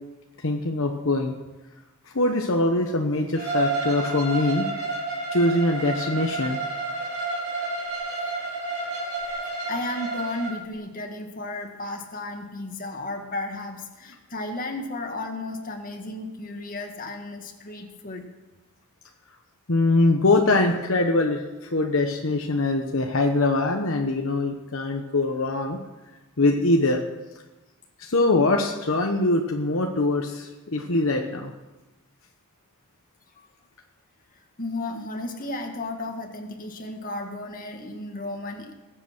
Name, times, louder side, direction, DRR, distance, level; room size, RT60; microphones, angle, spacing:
voice 1, 0.4-1.3 2.1-4.7 5.3-6.6 19.7-25.8 26.4-27.0 28.0-31.5, left 2 dB, 60° left, 3 dB, 1.1 m, -23 dB
Bowed string instrument, 3.3-10.5, right 3 dB, 50° right, 4.2 m, -30 dB
voice 2, 9.3-18.3 33.4-33.5 34.6-38.7, left 2 dB, 40° left, 3 dB, 1.9 m, -34 dB
20.5 x 8.1 x 6.1 m, 1.1 s
head